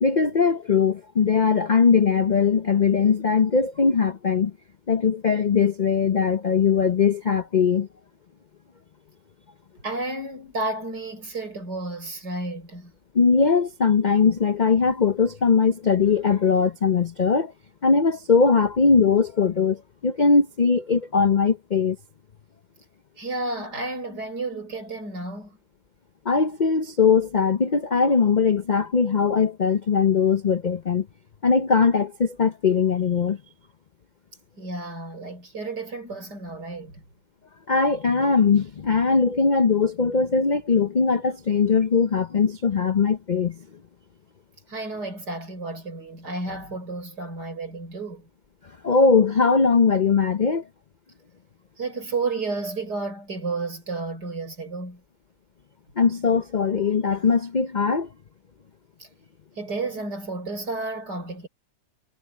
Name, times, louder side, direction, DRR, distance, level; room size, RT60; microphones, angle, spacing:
voice 1, 0.0-4.5 4.9-7.9 13.1-17.5 17.8-22.0 26.2-31.1 31.4-33.4 37.7-43.6 48.8-50.7 56.0-58.1, left 5 dB, 70° left, 0.4 m, -20 dB
voice 2, 9.8-12.9 23.2-25.6 34.6-37.0 44.7-48.3 51.8-55.0 59.0-59.1 59.6-61.5, right 3 dB, 70° right, 6.3 m, -32 dB
omnidirectional pair, 1.9 m